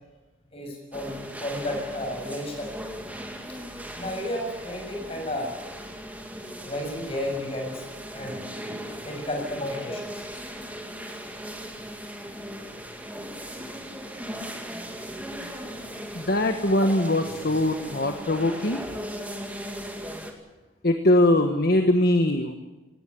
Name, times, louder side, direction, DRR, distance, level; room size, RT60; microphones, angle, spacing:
voice 1, 0.5-2.7 3.9-5.6 6.6-7.9 8.1-8.4 9.0-10.2 16.8-16.9, left 1 dB, 30° left, 1 dB, 7.1 m, -32 dB
sound 1, 0.9-20.3, equal, 10° right, 2.2 m, -38 dB
voice 2, 16.1-18.8 20.8-22.5, left 1 dB, 50° left, 5 dB, 1.3 m, -22 dB
18.5 x 18.0 x 9.8 m, 1.1 s
head